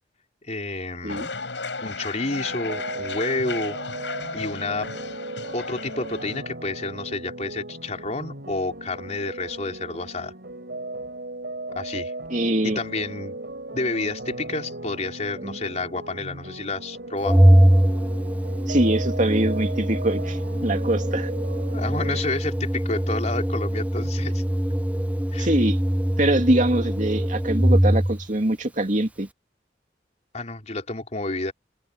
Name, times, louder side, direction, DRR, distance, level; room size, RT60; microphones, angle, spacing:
voice 1, 0.4-1.3 1.8-3.8 4.3-4.9 5.5-10.3 11.7-12.1 12.6-13.4 13.7-17.4 21.7-24.4 25.3-25.5 30.3-31.5, left 2 dB, 40° left, 4.3 m, -30 dB
sound 1, 1.1-6.4, left 4 dB, 85° left, 7.9 m, -34 dB
sound 2, 2.3-22.2, right 2 dB, 65° right, 6.4 m, -37 dB
voice 2, 12.3-12.8 15.4-15.6 18.7-21.3 25.4-25.8 26.2-29.3, right 1 dB, 45° right, 2.8 m, -23 dB
Organ, 17.2-28.2, equal, 10° right, 0.6 m, -22 dB
open air
head